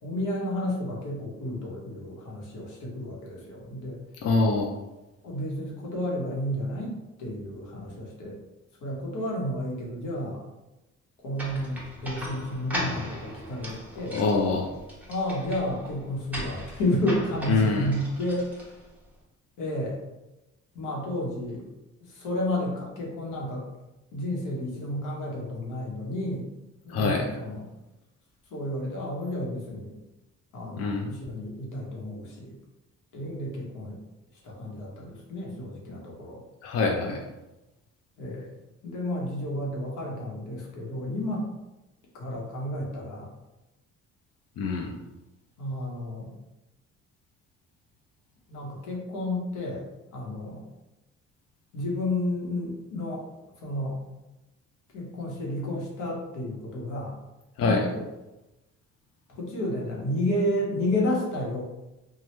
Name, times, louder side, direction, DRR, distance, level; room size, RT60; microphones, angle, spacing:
voice 1, 0.0-4.0 5.2-8.4 8.8-10.4 11.2-14.2 15.1-18.8 19.6-20.0 20.7-21.6 22.0-23.6 24.1-26.5 26.8-27.7 28.5-30.0 30.5-32.6 33.1-34.0 34.4-36.4 38.2-38.5 38.8-41.5 42.1-43.4 45.6-46.3 48.5-50.7 51.7-53.2 53.6-54.0 54.9-57.1 57.6-58.0 59.3-61.6, left 1 dB, 85° left, -2 dB, 1.0 m, -31 dB
voice 2, 4.2-4.7 14.1-14.7 17.5-17.9 26.9-27.3 30.8-31.1 36.6-37.2 44.6-44.9 57.6-57.8, left 3 dB, 55° left, 0 dB, 0.5 m, -24 dB
sound 1, 11.4-19.0, equal, 5° right, 0.9 m, -38 dB
3.0 x 2.2 x 3.1 m, 1.0 s
cardioid pair, 90°, 30 cm